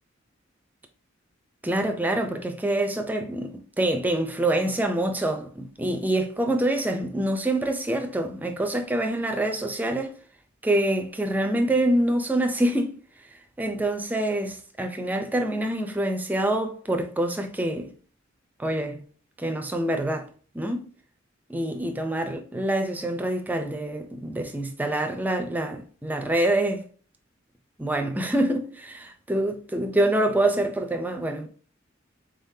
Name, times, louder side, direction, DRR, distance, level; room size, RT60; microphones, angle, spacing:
voice 1, 1.6-10.1 10.6-13.0 13.6-17.9 18.6-19.1 19.4-20.3 20.5-20.9 21.5-26.8 27.8-31.5, right 1 dB, 10° right, 0.4 m, -26 dB
3.9 x 3.7 x 2.7 m
head